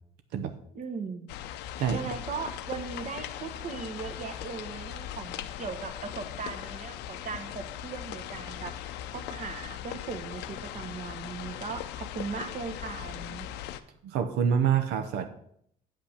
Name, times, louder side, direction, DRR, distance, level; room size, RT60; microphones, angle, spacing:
voice 1, 0.7-1.4 1.9-13.5, right 5 dB, 45° right, 7 dB, 1.3 m, -38 dB
sound 1, 1.3-13.8, left 11 dB, 90° left, 0.6 m, -39 dB
voice 2, 14.0-15.3, right 7 dB, 90° right, 7 dB, 0.8 m, -26 dB
8.6 x 5.8 x 6.5 m, 0.68 s
cardioid pair, 110°, 17 cm